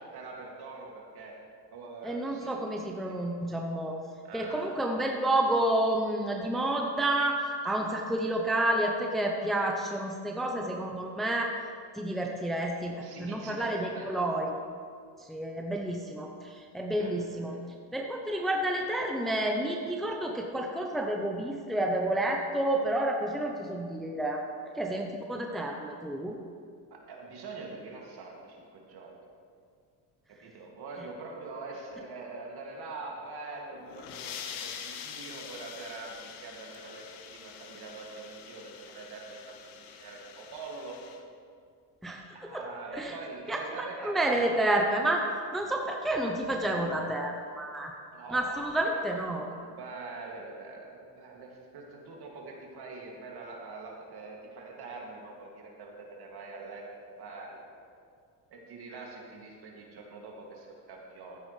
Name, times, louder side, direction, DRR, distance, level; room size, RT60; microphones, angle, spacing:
voice 1, 0.0-1.3 1.7-2.6 2.9-3.1 4.2-4.7 12.9-14.1 17.0-17.6 26.9-29.2 30.4-39.4 39.8-41.0 42.3-44.4 48.1-49.0 49.5-56.8 57.2-57.6 58.5-61.4, right 3 dB, 55° right, -1 dB, 2.4 m, -44 dB
voice 2, 2.0-4.0 4.3-11.6 12.0-14.5 15.3-17.6 17.9-24.5 24.8-26.3 42.0-42.7 43.0-43.1 43.5-45.2 45.5-47.9 48.3-49.5, right 1 dB, ahead, 1 dB, 0.7 m, -30 dB
sound 1, 33.7-41.2, left 8 dB, 80° left, 1.1 m, -45 dB
14.0 x 9.3 x 3.3 m, 2.2 s
cardioid pair, 115°, 46 cm